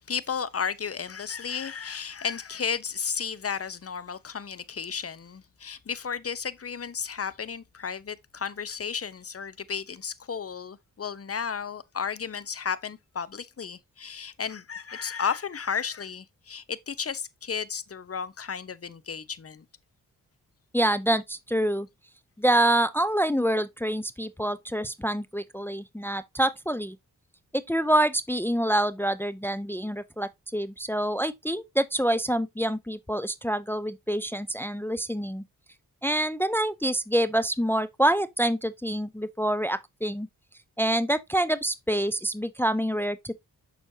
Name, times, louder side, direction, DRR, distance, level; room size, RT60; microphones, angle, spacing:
voice 1, 0.1-19.6, left 6 dB, 40° left, 0.9 m, -33 dB
voice 2, 20.7-21.9 22.4-27.0 27.5-35.4 36.0-40.3 40.8-43.3, right 1 dB, 5° left, 0.6 m, -26 dB
7.0 x 6.4 x 2.8 m
cardioid pair, 45°, 35 cm